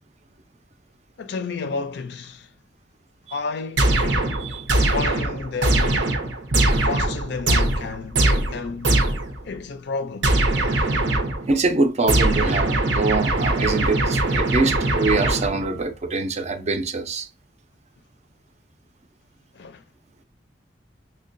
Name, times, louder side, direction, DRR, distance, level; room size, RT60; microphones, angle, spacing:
voice 1, 1.2-2.5 3.3-4.4 4.7-6.2 6.7-9.0 9.4-10.3 19.5-19.8, left 4 dB, 65° left, 0.4 m, -31 dB
sound 1, 3.8-9.4 10.2-11.5 12.1-15.8, right 2 dB, 85° right, 0.7 m, -21 dB
voice 2, 11.5-17.3, right 3 dB, 40° right, 0.4 m, -24 dB
6.3 x 2.2 x 2.5 m
head